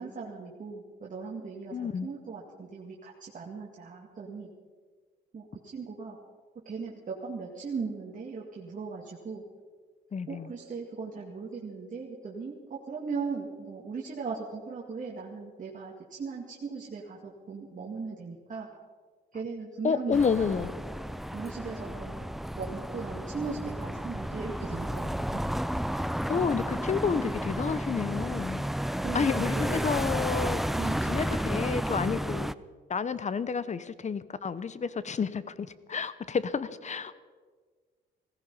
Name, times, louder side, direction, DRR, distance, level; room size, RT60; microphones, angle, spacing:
voice 1, 0.0-4.5 5.3-5.4 5.7-6.2 6.7-9.4 10.3-18.7 19.3-20.7 21.3-25.5 29.0-29.9 30.8-31.1, right 5 dB, 40° right, -3 dB, 2.2 m, -38 dB
voice 2, 1.7-2.1 10.1-10.5 19.8-20.7 26.3-28.7 29.1-30.8 31.0-32.5 32.9-37.1, left 6 dB, 35° left, 16 dB, 0.8 m, -30 dB
sound 1, 20.1-32.5, equal, ahead, 0.4 m, -32 dB
16.5 x 15.5 x 5.5 m, 1.5 s
cardioid pair, 90°, 20 cm